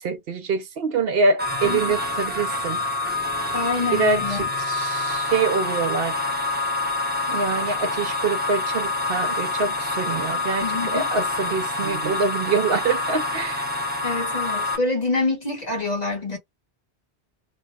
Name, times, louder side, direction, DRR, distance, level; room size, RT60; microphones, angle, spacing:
voice 1, 0.0-2.8 3.9-6.2 7.3-13.7, right 4 dB, 65° right, 0.8 m, -25 dB
sound 1, 1.4-14.8, left 2 dB, 10° right, 0.9 m, -26 dB
voice 2, 1.6-1.9 3.5-4.4 10.6-11.1 14.0-16.4, left 3 dB, 40° left, 1.5 m, -26 dB
2.9 x 2.2 x 3.3 m
omnidirectional pair, 1.1 m